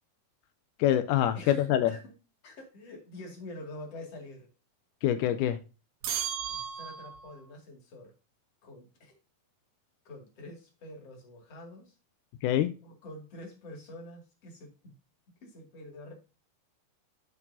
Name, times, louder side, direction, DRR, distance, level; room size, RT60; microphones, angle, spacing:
voice 1, 0.8-1.9 5.0-5.6 12.4-12.7, left 11 dB, 85° left, 1.8 m, -25 dB
voice 2, 1.3-2.1 2.4-4.5 6.5-8.1 8.6-9.2 10.0-11.9 12.8-14.9 15.4-16.1, left 1 dB, 45° left, 3.2 m, -46 dB
sound 1, 6.0-7.4, right 9 dB, 80° right, 3.0 m, -35 dB
13.5 x 4.6 x 2.7 m
omnidirectional pair, 4.3 m